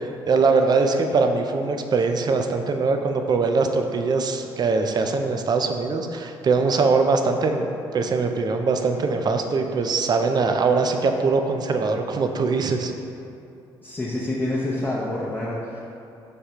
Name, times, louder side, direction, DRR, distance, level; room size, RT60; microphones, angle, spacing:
voice 1, 0.0-7.6 7.9-12.9, right 4 dB, 40° right, 5 dB, 0.4 m, -22 dB
voice 2, 13.8-15.8, left 1 dB, 20° left, -6 dB, 0.6 m, -27 dB
5.0 x 2.3 x 4.3 m, 2.7 s
supercardioid pair, 60°, 10 cm